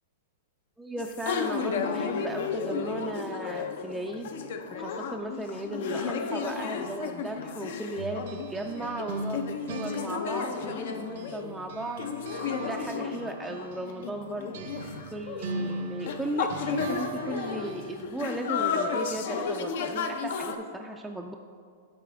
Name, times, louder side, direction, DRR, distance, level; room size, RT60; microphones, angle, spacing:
voice 1, 0.8-4.3 4.7-14.7 15.1-21.3, right 1 dB, 5° right, 1 dB, 0.3 m, -36 dB
sound 1, 1.0-20.6, left 5 dB, 65° left, 0.5 m, -33 dB
sound 2, 8.0-11.4 11.7-18.1, right 2 dB, 65° right, 0.6 m, -40 dB
9.2 x 4.1 x 3.5 m, 2.1 s
hypercardioid pair, 135°, 0 cm